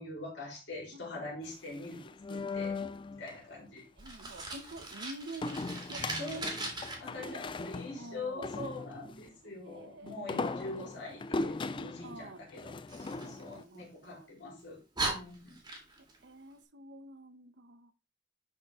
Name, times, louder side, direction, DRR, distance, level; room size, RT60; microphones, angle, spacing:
voice 1, 0.0-2.0 2.3-2.8 3.1-3.8 6.2-6.5 7.0-12.8 13.1-15.5, left 2 dB, 65° left, 4.1 m, -43 dB
voice 2, 0.9-1.4 2.4-2.6 3.9-5.6 5.9-6.6 7.1-7.4 7.9-8.5 9.4-10.4 12.0-12.4 13.2-14.3 16.2-17.9, right 2 dB, 65° right, 1.0 m, -48 dB
sound 1, 1.5-3.4 5.4-9.2 10.1-13.6, left 3 dB, 25° left, 0.3 m, -39 dB
Fire, 4.0-6.9 12.9-14.1 14.6-14.7 14.9-16.2, right 2 dB, 20° right, 2.3 m, -39 dB
10.5 x 4.7 x 3.7 m
head